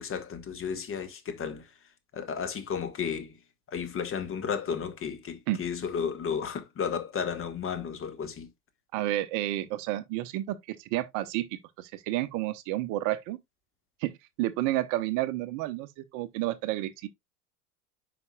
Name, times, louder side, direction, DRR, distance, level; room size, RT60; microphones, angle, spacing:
voice 1, 0.0-1.7 2.1-3.4 3.7-8.5, left 7 dB, 30° left, 1.5 m, -33 dB
voice 2, 8.9-11.5 11.8-13.4 14.0-15.9 16.1-17.1, right 15 dB, 45° right, 0.7 m, -30 dB
9.5 x 5.1 x 2.3 m
figure-of-eight pair, 75°, 44 cm